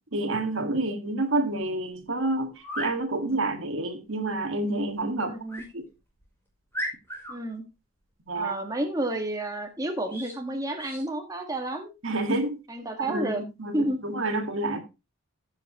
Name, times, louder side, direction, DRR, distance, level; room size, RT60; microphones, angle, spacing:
voice 1, 0.1-5.4 5.7-5.9 8.3-8.5 12.0-12.6 13.0-14.8, right 2 dB, 60° right, 1.7 m, -28 dB
sound 1, 2.5-3.0 5.5-5.7 6.2-6.3 6.7-7.4 10.1-10.4 10.8-11.0, equal, 10° left, 5.1 m, -35 dB
voice 2, 5.2-5.6 7.3-7.6 8.3-11.9 12.7-13.4 13.7-14.0, right 1 dB, 15° right, 1.5 m, -30 dB
14.5 x 6.8 x 2.9 m
head